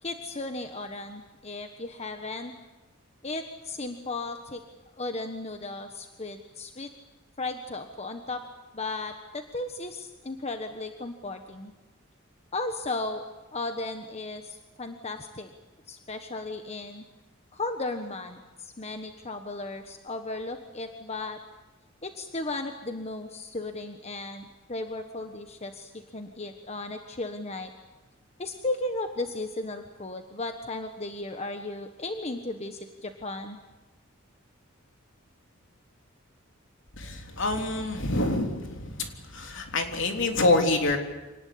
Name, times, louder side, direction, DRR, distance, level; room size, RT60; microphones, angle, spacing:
voice 1, 0.0-2.5 3.2-4.6 5.0-6.9 7.4-8.4 8.7-11.7 12.5-13.2 13.5-15.5 15.9-17.0 17.5-21.4 22.0-27.7 28.4-33.6, left 2 dB, 30° left, 6 dB, 1.3 m, -35 dB
voice 2, 37.0-41.0, left 2 dB, 60° left, 4 dB, 3.5 m, -26 dB
26.5 x 19.0 x 8.6 m, 1.1 s
head